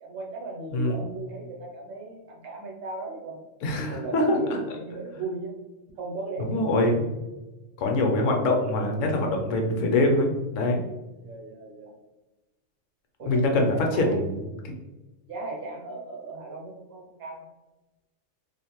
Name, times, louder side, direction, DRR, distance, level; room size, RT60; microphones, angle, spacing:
voice 1, 0.0-3.4 3.8-5.5 6.0-6.9 11.2-11.9 13.2-14.2 15.3-17.5, right 3 dB, 60° right, 0 dB, 0.8 m, -37 dB
voice 2, 0.7-1.1 3.6-4.4 6.5-7.1 7.8-10.8 13.3-14.7, left 2 dB, 75° left, 2 dB, 0.9 m, -24 dB
2.5 x 2.1 x 2.9 m, 1.1 s
omnidirectional pair, 1.3 m